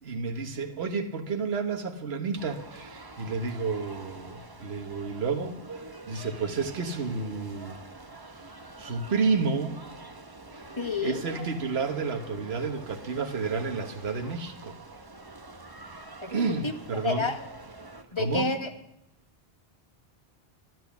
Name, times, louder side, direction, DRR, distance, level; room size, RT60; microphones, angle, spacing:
voice 1, 0.0-5.6 6.1-7.8 8.3-9.8 11.0-14.8 16.3-17.3 18.2-18.5, right 4 dB, 75° right, 5 dB, 1.5 m, -31 dB
sound 1, 2.4-18.0, right 2 dB, 25° right, 1.0 m, -46 dB
voice 2, 10.8-11.2 16.2-16.3 16.6-16.7 17.0-17.4 18.1-18.7, left 3 dB, 30° left, 7 dB, 1.1 m, -28 dB
12.5 x 11.0 x 7.1 m, 0.83 s
omnidirectional pair, 1.1 m